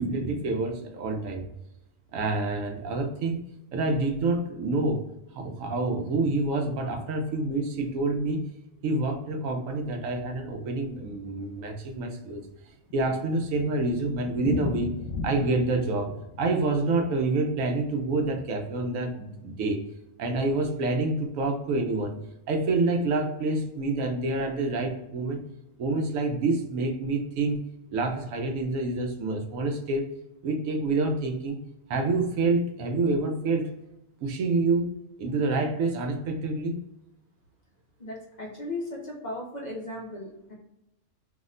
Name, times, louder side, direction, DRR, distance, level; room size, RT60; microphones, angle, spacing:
voice 1, 0.0-1.5 2.1-3.5 3.7-5.1 5.4-8.5 8.8-12.4 12.9-14.9 15.2-19.8 20.2-22.2 22.5-25.4 25.8-27.6 27.9-30.1 30.4-31.6 31.9-33.7 34.2-34.9 35.2-36.8, right 3 dB, 90° right, 3 dB, 1.0 m, -27 dB
Thunder, 12.5-18.8 19.1-19.2 19.5-19.6 19.8-19.9 20.5-20.8, left 3 dB, 80° left, 0.9 m, -37 dB
voice 2, 38.0-40.5, left 2 dB, 50° left, -3 dB, 0.5 m, -36 dB
2.8 x 2.1 x 3.6 m, 0.87 s
omnidirectional pair, 1.3 m